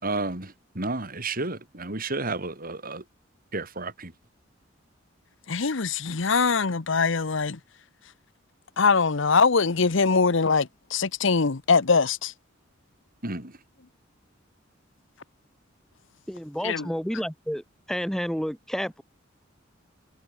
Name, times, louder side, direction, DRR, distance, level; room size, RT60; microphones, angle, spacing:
voice 1, 0.0-3.0 3.5-4.1 13.2-13.5, right 2 dB, 45° right, 4.9 m, -31 dB
voice 2, 5.5-7.6 8.8-12.3 16.6-16.9, left 4 dB, 70° left, 0.9 m, -22 dB
voice 3, 16.3-19.0, equal, ahead, 2.5 m, -30 dB
head